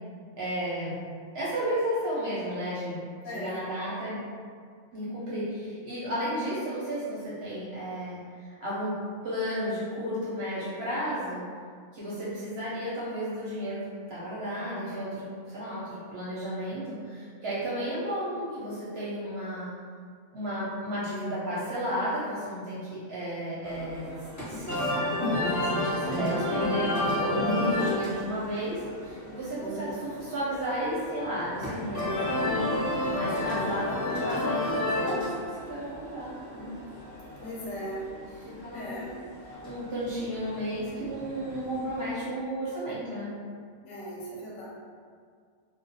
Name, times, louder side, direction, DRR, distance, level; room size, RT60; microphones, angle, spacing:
voice 1, 0.4-1.0 1.3-3.0 3.3-4.2 4.9-8.2 8.5-9.0 9.2-11.4 11.9-13.8 14.1-19.7 20.3-24.1 24.5-25.1 25.4-36.7 38.4-39.1 39.6-43.3, equal, 60° right, -9 dB, 0.7 m, -33 dB
voice 2, 3.2-3.7 12.1-12.5 29.6-29.9 33.4-33.8 37.4-38.0 38.7-39.2 43.8-44.7, equal, 70° left, -6 dB, 0.8 m, -38 dB
sound 1, 23.6-42.1, left 1 dB, 20° left, 0.5 m, -32 dB
2.3 x 2.0 x 2.6 m, 2.1 s
omnidirectional pair, 1.5 m